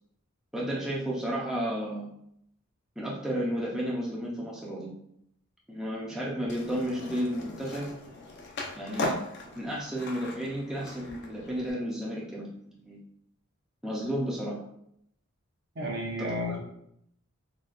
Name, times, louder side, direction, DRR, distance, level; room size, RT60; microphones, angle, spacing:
voice 1, 0.5-2.1 3.0-4.9 5.7-7.9 8.8-9.2 9.5-13.0 13.8-14.6 16.2-16.6, equal, 5° right, -6 dB, 0.5 m, -32 dB
Skateboard, 6.5-11.7, left 2 dB, 55° left, 0.6 m, -38 dB
voice 2, 15.7-16.6, equal, 55° right, -2 dB, 0.9 m, -32 dB
4.0 x 2.3 x 2.4 m, 0.73 s
head